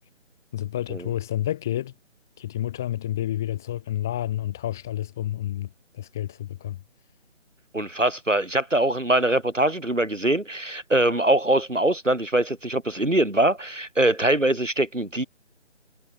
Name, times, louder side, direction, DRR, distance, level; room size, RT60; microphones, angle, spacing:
voice 1, 0.5-1.9 2.4-5.7 5.9-6.8, left 12 dB, 5° left, 0.9 m, -29 dB
voice 2, 7.7-15.2, right 1 dB, 90° right, 3.2 m, -23 dB
figure-of-eight pair, 155°, 37 cm